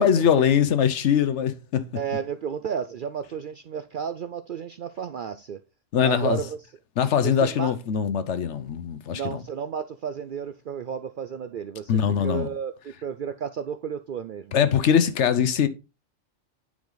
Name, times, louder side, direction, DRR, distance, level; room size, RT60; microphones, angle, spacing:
voice 1, 0.0-1.9 5.9-6.4 7.0-9.4 11.9-12.5 14.5-15.7, left 8 dB, 65° left, 1.0 m, -22 dB
voice 2, 1.9-5.6 6.0-6.6 7.2-7.7 9.1-14.6, right 7 dB, 60° right, 0.5 m, -32 dB
9.3 x 5.0 x 3.9 m
omnidirectional pair, 1.3 m